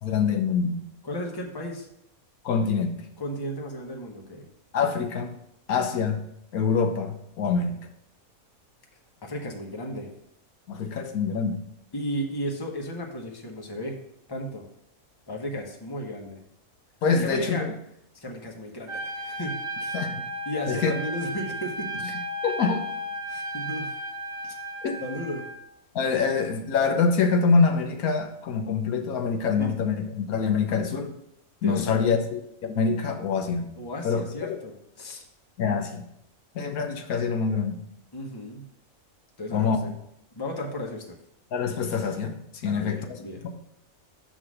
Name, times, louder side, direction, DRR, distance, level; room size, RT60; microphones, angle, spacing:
voice 1, 0.0-0.8 2.4-3.0 4.7-5.3 5.7-6.2 6.5-7.8 10.7-11.6 17.0-17.7 19.9-20.2 20.7-20.9 22.4-22.9 24.8-25.0 25.9-31.2 31.6-33.7 34.0-34.6 35.6-36.0 36.5-37.8 39.5-40.0 41.5-43.2, left 5 dB, 80° left, 5 dB, 1.3 m, -25 dB
voice 2, 1.0-1.9 3.2-4.5 9.2-10.1 11.9-14.0 14.3-14.7 15.3-16.4 17.1-17.7 18.1-20.1 20.5-21.9 23.3-23.9 24.4-24.5 25.0-25.4 29.6-29.7 31.6-32.1 33.8-35.2 38.1-38.7 39.4-39.9 40.3-41.1 42.6-43.5, equal, 20° left, 0 dB, 1.0 m, -34 dB
Trumpet, 18.9-25.6, right 1 dB, 70° right, 1.5 m, -34 dB
7.1 x 3.9 x 6.3 m, 0.74 s
omnidirectional pair, 1.5 m